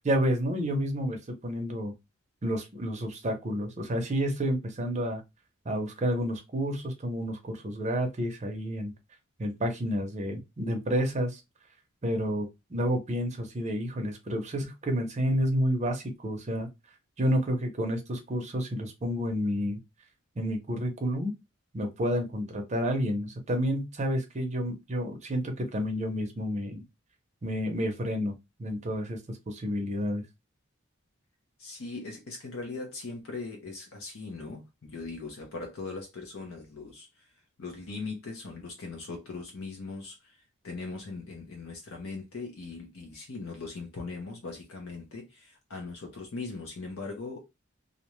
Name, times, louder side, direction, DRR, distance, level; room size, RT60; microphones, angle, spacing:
voice 1, 0.0-1.9 2.4-5.2 5.7-8.9 9.4-11.4 12.0-16.7 17.2-19.8 20.4-21.3 21.7-26.8 27.4-28.3 28.6-30.2, equal, 35° right, 0.6 m, -30 dB
voice 2, 31.6-37.1 37.6-40.2 40.6-47.4, left 3 dB, 80° left, 0.7 m, -40 dB
2.4 x 2.1 x 3.0 m
head